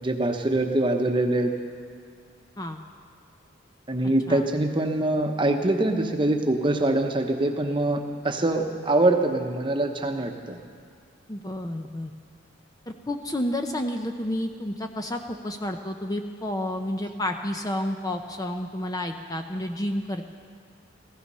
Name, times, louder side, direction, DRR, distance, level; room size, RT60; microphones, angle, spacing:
voice 1, 0.0-1.5 3.9-10.6, right 2 dB, 25° right, 4 dB, 1.0 m, -24 dB
voice 2, 11.3-12.1 12.9-20.3, left 1 dB, 20° left, 5 dB, 0.7 m, -30 dB
16.0 x 15.5 x 5.5 m, 2.2 s
head